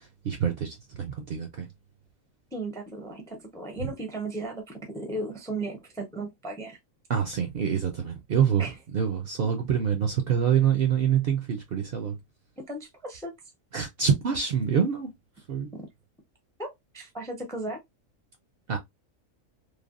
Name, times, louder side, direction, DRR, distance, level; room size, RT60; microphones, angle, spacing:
voice 1, 0.0-1.7 7.1-12.2 13.7-15.1 15.5-15.7 18.7-18.8, right 8 dB, 60° right, 0.6 m, -26 dB
voice 2, 2.5-6.8 8.6-8.7 12.6-13.3 15.7-15.8 16.6-17.8, right 2 dB, 5° left, 0.4 m, -36 dB
3.3 x 2.1 x 2.4 m
omnidirectional pair, 1.4 m